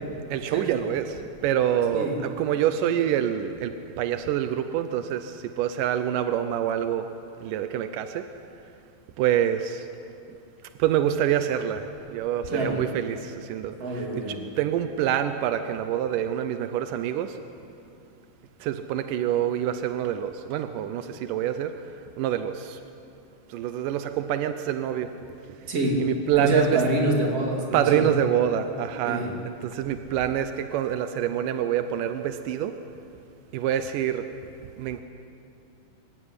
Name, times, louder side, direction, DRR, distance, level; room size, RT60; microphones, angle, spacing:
voice 1, 0.3-7.1 7.4-8.3 9.2-9.9 10.8-17.4 18.6-21.7 22.2-22.8 23.5-25.1 26.0-26.8 27.7-32.7 33.5-34.3 34.8-35.0, right 10 dB, 80° right, 9 dB, 1.9 m, -26 dB
voice 2, 12.5-12.8 13.8-14.4 25.7-26.0 26.4-28.0 29.0-29.3, right 1 dB, 40° right, -1 dB, 3.8 m, -25 dB
24.5 x 15.5 x 9.8 m, 2.7 s
omnidirectional pair, 4.8 m